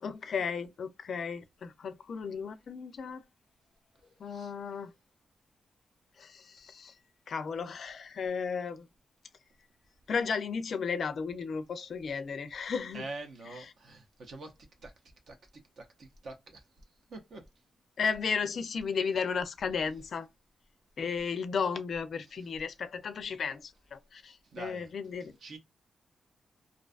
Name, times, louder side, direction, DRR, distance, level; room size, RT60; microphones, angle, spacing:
voice 1, 0.0-3.2 4.2-4.9 6.2-6.9 7.3-8.9 10.1-13.1 18.0-20.3 21.0-25.3, left 6 dB, 55° left, 0.4 m, -34 dB
voice 2, 12.9-14.5 14.8-14.9 15.3-15.4 15.8-16.6 17.1-17.5 24.5-24.9 25.4-25.6, right 2 dB, 60° right, 0.6 m, -44 dB
2.5 x 2.3 x 2.3 m
wide cardioid pair, 145°, 0 cm